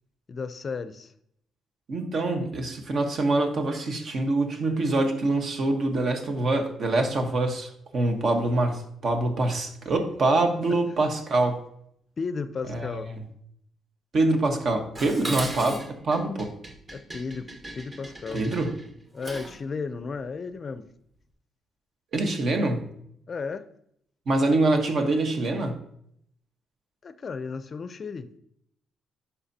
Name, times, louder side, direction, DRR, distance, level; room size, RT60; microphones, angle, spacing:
voice 1, 0.3-1.1 11.0-11.1 12.2-13.1 15.2-15.5 16.9-17.5 17.8-18.4 19.1-20.9 23.3-23.6 27.0-28.3, left 5 dB, 40° left, 12 dB, 0.5 m, -34 dB
voice 2, 1.9-11.6 12.7-13.2 14.1-16.5 18.3-18.7 22.1-22.9 24.3-25.8, right 2 dB, 50° right, 4 dB, 1.2 m, -25 dB
Dishes pots and pans, 14.9-19.6, right 1 dB, 30° right, 1.3 m, -38 dB
9.8 x 5.6 x 2.8 m, 0.71 s
cardioid pair, 110°, 0 cm